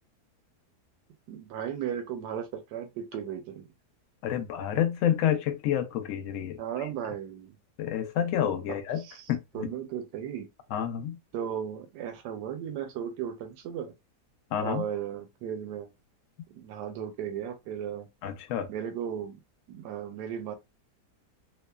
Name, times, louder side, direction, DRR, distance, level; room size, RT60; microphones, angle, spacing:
voice 1, 1.3-3.7 6.6-7.6 8.7-8.8 9.0-9.2 9.5-10.5 11.3-13.9 14.6-15.9 16.5-18.1 18.7-19.4 19.7-20.5, right 9 dB, 75° right, 1.1 m, -35 dB
voice 2, 4.2-7.1 7.8-9.7 10.7-11.2 14.5-14.9 18.2-18.7, left 10 dB, 65° left, 0.8 m, -29 dB
3.0 x 2.0 x 2.2 m
omnidirectional pair, 1.8 m